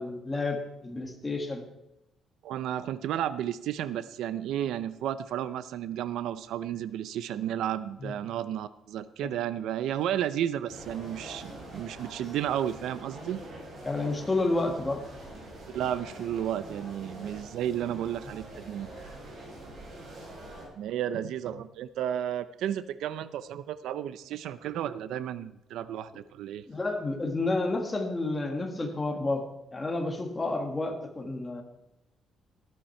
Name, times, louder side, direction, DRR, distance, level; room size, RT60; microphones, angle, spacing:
voice 1, 0.0-1.6 8.0-8.1 13.8-15.0 26.7-29.4 29.7-31.6, left 2 dB, 15° left, 3 dB, 1.6 m, -30 dB
voice 2, 2.4-13.4 15.7-18.9 20.8-26.7, right 10 dB, 75° right, 14 dB, 0.6 m, -32 dB
sound 1, 10.7-20.6, right 1 dB, 40° right, 5.6 m, -45 dB
14.0 x 12.0 x 4.4 m, 0.89 s
cardioid pair, 165°, 0 cm